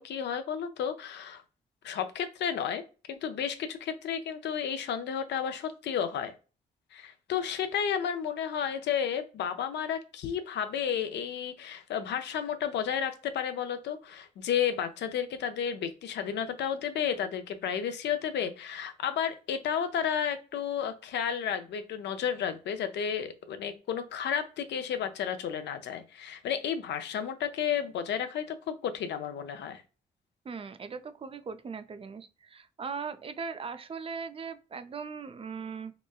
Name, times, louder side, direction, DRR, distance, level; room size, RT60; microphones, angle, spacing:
voice 1, 0.0-1.4 1.8-2.8 3.1-6.3 6.9-29.8, left 8 dB, 70° left, 0.5 m, -32 dB
voice 2, 30.4-35.9, right 5 dB, 30° right, 0.4 m, -39 dB
3.0 x 2.2 x 2.2 m
supercardioid pair, 50°, 19 cm